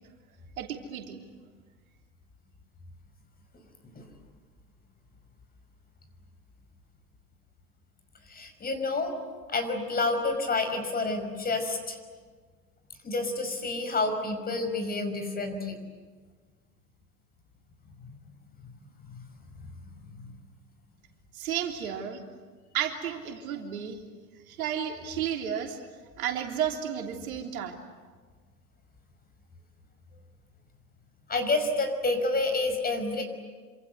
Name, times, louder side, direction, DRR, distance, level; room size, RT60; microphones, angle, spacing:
voice 1, 0.6-1.2 21.3-22.2 22.7-24.0 24.5-25.8 26.2-27.8, right 9 dB, 65° right, 2 dB, 3.4 m, -32 dB
voice 2, 8.3-9.2 9.5-12.0 13.0-15.8 18.0-18.1 19.1-19.3 20.0-20.3 31.3-33.2, left 3 dB, 20° left, 7 dB, 5.5 m, -29 dB
27.5 x 26.5 x 7.9 m, 1.5 s
figure-of-eight pair, 90°, 46 cm